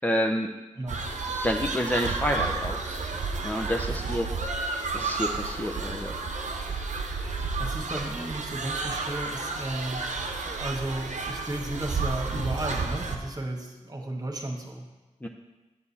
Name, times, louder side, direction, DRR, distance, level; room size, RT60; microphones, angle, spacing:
voice 1, 0.0-0.5 1.4-2.9 3.4-4.3 4.6-6.1 15.2-15.3, equal, 10° left, 1 dB, 0.7 m, -29 dB
sound 1, 0.9-13.2, right 3 dB, 65° right, 0.9 m, -31 dB
voice 2, 3.9-4.2 7.2-14.8, right 1 dB, 30° right, 1 dB, 1.6 m, -34 dB
8.5 x 6.8 x 4.2 m, 1.1 s
cardioid pair, 45°, 13 cm